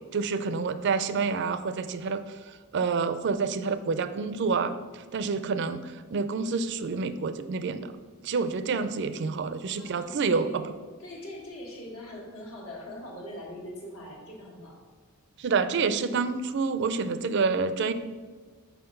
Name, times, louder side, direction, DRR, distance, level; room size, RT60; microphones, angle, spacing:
voice 1, 0.1-7.9 8.2-10.6 15.4-17.9, right 4 dB, 50° right, 11 dB, 0.4 m, -28 dB
voice 2, 9.8-10.6 11.0-14.8, left 1 dB, 75° left, -2 dB, 1.6 m, -42 dB
5.7 x 4.4 x 5.4 m, 1.5 s
head